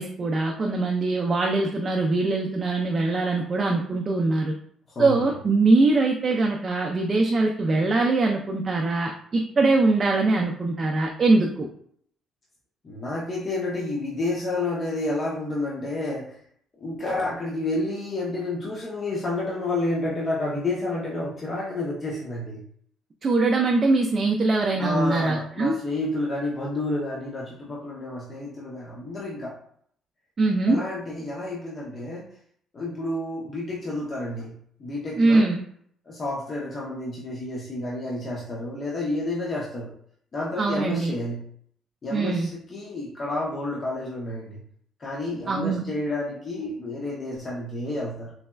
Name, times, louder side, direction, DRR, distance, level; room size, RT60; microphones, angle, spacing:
voice 1, 0.0-4.5 5.0-11.7 23.2-25.8 30.4-30.8 35.2-35.6 40.6-41.1 42.1-42.5 45.5-45.8, right 3 dB, 30° right, 1 dB, 0.3 m, -22 dB
voice 2, 4.9-5.2 12.8-16.4 16.8-22.6 24.8-29.6 30.7-32.4 32.7-35.5 36.1-39.9 40.3-41.4 42.0-44.6 45.0-48.3, left 2 dB, 35° left, -4 dB, 0.6 m, -30 dB
4.0 x 2.1 x 2.2 m, 0.64 s
cardioid pair, 130°, 0 cm